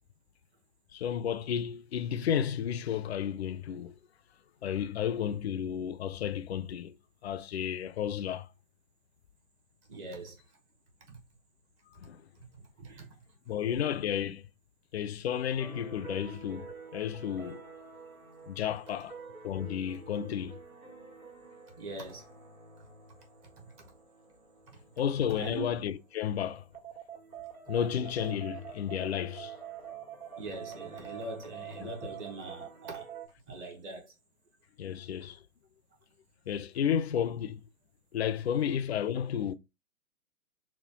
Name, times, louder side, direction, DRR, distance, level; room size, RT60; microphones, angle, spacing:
voice 1, 0.9-4.0 4.6-6.9 7.2-8.5 12.0-12.2 13.5-14.4 14.9-17.6 18.5-19.2 19.4-20.6 25.0-26.6 27.7-29.5 31.8-31.9 34.8-35.4 36.5-37.6 38.1-39.5, left 9 dB, 50° left, 0.5 m, -32 dB
voice 2, 9.9-10.4 11.1-11.2 12.4-13.2 20.2-20.3 21.8-22.3 23.6-23.9 24.7-24.8 25.3-25.6 30.4-33.1 33.5-34.1, right 2 dB, 20° right, 0.8 m, -42 dB
sound 1, 15.6-33.3, right 7 dB, 80° right, 1.6 m, -47 dB
4.2 x 2.2 x 4.1 m
figure-of-eight pair, 130°, 43 cm